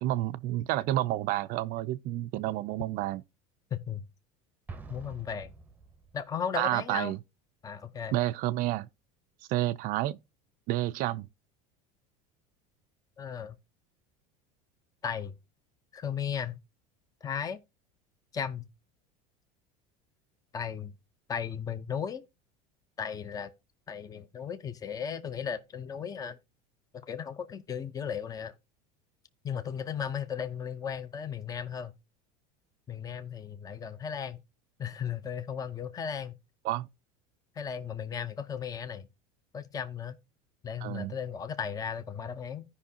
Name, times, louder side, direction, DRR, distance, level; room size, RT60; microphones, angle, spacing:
voice 1, 0.0-3.2 6.6-7.2 8.1-8.9 9.5-10.2 10.7-11.3 36.6-36.9 40.8-41.1, right 15 dB, 55° right, 0.4 m, -30 dB
voice 2, 3.7-4.0 4.9-5.5 6.1-7.1 7.6-8.1 13.2-13.6 15.0-15.3 15.9-16.6 17.2-17.6 18.3-18.7 20.5-20.9 21.3-22.2 23.0-23.5 23.9-26.4 27.1-28.5 29.4-31.9 32.9-34.4 34.8-36.4 37.6-39.1 39.5-40.2 40.6-42.6, left 7 dB, 20° left, 0.6 m, -35 dB
Explosion, 4.7-6.4, right 4 dB, 10° right, 0.8 m, -47 dB
14.5 x 5.4 x 2.8 m
supercardioid pair, 120°, 18 cm